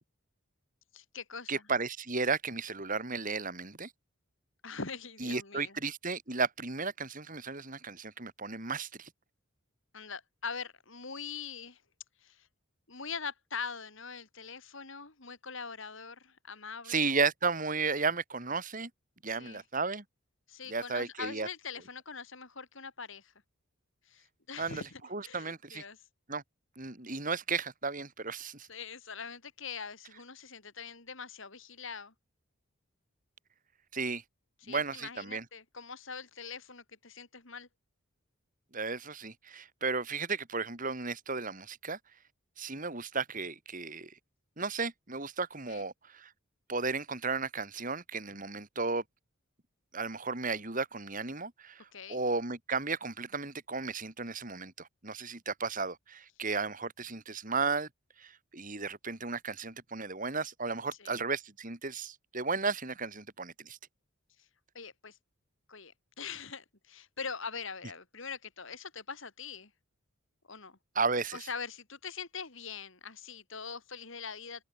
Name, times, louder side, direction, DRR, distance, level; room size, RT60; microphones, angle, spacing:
voice 1, 0.9-1.6 4.6-5.8 9.9-11.8 12.2-12.5 12.9-17.1 19.3-19.6 20.5-23.3 24.1-26.0 28.7-32.1 34.6-37.7 45.7-45.8 51.9-52.2 61.0-61.2 64.7-65.2 65.7-69.7 70.5-70.8 71.3-74.6, left 5 dB, 60° left, 2.7 m, -43 dB
voice 2, 1.5-3.9 5.2-9.1 16.9-18.9 19.2-20.0 20.7-21.5 24.6-24.8 25.1-25.8 26.3-26.4 26.8-28.7 33.9-34.2 34.7-35.4 38.7-42.0 42.6-44.1 44.6-46.3 46.7-49.0 49.9-57.9 58.2-63.8 70.9-71.4, right 4 dB, 40° right, 3.2 m, -34 dB
head